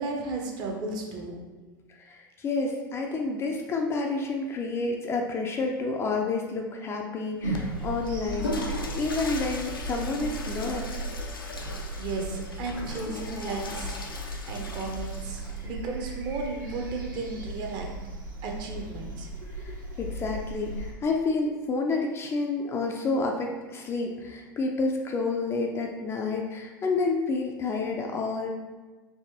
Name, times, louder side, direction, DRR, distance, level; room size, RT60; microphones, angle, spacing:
voice 1, 0.0-1.4 12.0-17.9 18.4-19.3 19.6-20.0, right 3 dB, 35° right, 1 dB, 0.7 m, -35 dB
voice 2, 2.0-10.9 19.6-28.5, left 3 dB, 20° left, 1 dB, 0.4 m, -29 dB
Water / Toilet flush, 7.4-15.7, left 2 dB, 80° left, 0.5 m, -38 dB
sound 1, 7.4-20.9, right 2 dB, 65° right, 1.0 m, -36 dB
4.7 x 3.2 x 2.7 m, 1.2 s
figure-of-eight pair, 85°, 12 cm